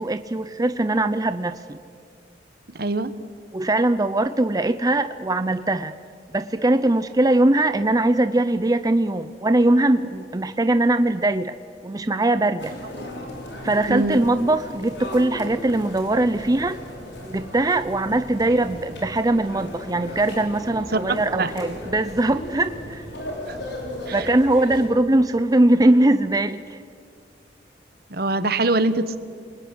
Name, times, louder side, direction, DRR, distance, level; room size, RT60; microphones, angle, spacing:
voice 1, 0.0-1.8 3.5-5.9 6.3-11.5 11.8-12.8 13.6-16.8 17.2-23.0 24.1-26.8, right 1 dB, 20° right, 11 dB, 0.6 m, -21 dB
voice 2, 2.7-3.1 13.9-14.2 20.9-21.5 23.5-23.6 24.1-24.3 28.1-29.2, right 2 dB, 60° right, 12 dB, 1.3 m, -23 dB
sound 1, 12.6-24.8, left 1 dB, 75° left, 6.6 m, -36 dB
28.5 x 20.5 x 9.6 m, 2.3 s
head